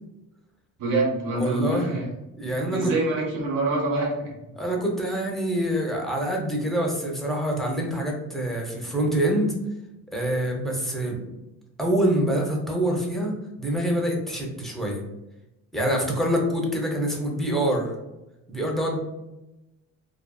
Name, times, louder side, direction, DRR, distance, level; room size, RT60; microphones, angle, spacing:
voice 1, 0.8-2.0 2.5-4.3, right 2 dB, 65° right, -2 dB, 1.0 m, -26 dB
voice 2, 1.3-1.9 2.4-2.9 4.6-9.5 10.1-11.2 11.8-13.3 13.6-15.0 15.7-17.9 18.5-19.0, right 1 dB, ahead, -1 dB, 0.6 m, -25 dB
2.5 x 2.3 x 2.3 m, 0.94 s
cardioid pair, 95°, 33 cm